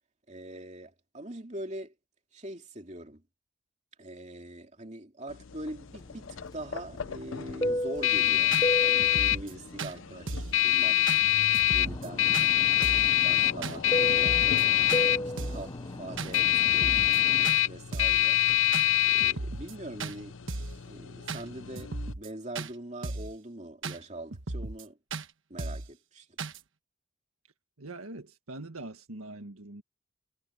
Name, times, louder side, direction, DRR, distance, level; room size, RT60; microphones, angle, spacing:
voice 1, 0.3-1.9 2.3-3.2 4.0-11.0 11.7-12.4 12.7-14.9 15.2-18.8 19.0-20.4 20.8-25.0 25.5-26.3, right 1 dB, 30° right, 2.9 m, -43 dB
sound 1, 5.3-22.1, left 15 dB, 65° left, 0.6 m, -26 dB
Fixed-wing aircraft airplane, 6.0-11.4 11.7-17.6, equal, 20° left, 0.7 m, -35 dB
sound 2, 8.0-8.1 8.5-8.7 9.0-9.5 9.8-9.9 10.3-10.6 11.1-11.2 11.5-12.1 12.3-12.5 12.8-13.1 13.6-13.8 14.1-14.6 14.9-15.0 15.4-15.7 16.2-16.4 16.6-17.2 17.4-17.6 17.9-18.2 18.7-18.9 19.2-19.7 20.0-20.1 20.5-20.8 21.3-21.4 21.8-22.3 22.6-22.7 23.0-23.3 23.8-24.0 24.3-24.8 25.1-25.3 25.6-25.9 26.4-26.6, right 3 dB, 65° right, 1.3 m, -36 dB
voice 2, 27.8-29.8, right 2 dB, 90° right, 1.8 m, -43 dB
head